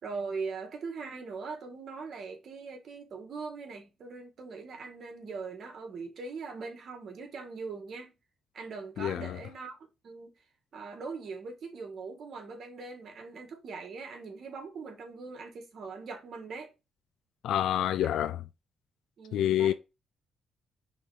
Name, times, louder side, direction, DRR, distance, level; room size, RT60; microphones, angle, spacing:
voice 1, 0.0-8.1 8.5-9.8 10.0-10.3 10.7-16.7 18.0-18.1 19.2-19.7, right 4 dB, 50° right, 1.8 m, -41 dB
voice 2, 9.0-9.4 17.4-18.4 19.3-19.7, left 11 dB, 85° left, 0.4 m, -27 dB
5.5 x 3.5 x 5.0 m
cardioid pair, 150°, 0 cm